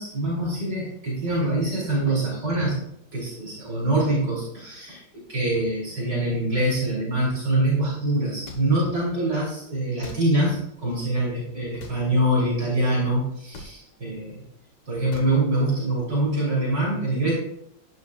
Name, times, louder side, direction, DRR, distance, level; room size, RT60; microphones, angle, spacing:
voice 1, 0.0-2.8 3.1-5.0 5.3-14.4 14.9-17.3, right 1 dB, 65° right, -5 dB, 3.8 m, -24 dB
sound 1, 1.2-1.4 2.5-2.7 4.0-4.2 5.5-5.7 7.2-7.3 8.8-9.0 10.5-10.6 11.7-11.9 12.8-13.0, equal, 45° right, 3.9 m, -46 dB
sound 2, 8.4-8.6 10.0-10.2 11.8-12.0 13.5-13.7 15.1-15.3, left 3 dB, 70° left, 2.0 m, -40 dB
11.5 x 10.0 x 2.3 m, 0.75 s
omnidirectional pair, 2.0 m